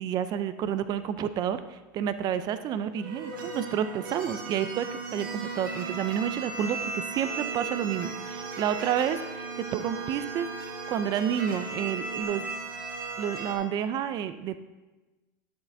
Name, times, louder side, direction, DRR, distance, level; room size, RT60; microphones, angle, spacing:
voice 1, 0.0-4.9 5.1-10.5 10.9-12.5 13.2-14.6, right 9 dB, 35° right, 12 dB, 0.4 m, -30 dB
sound 1, 3.0-13.6, right 4 dB, 90° right, 1.4 m, -36 dB
Telephone, 7.2-12.2, left 1 dB, 10° left, 0.7 m, -45 dB
11.5 x 7.3 x 2.6 m, 1.1 s
supercardioid pair, 115°, 11 cm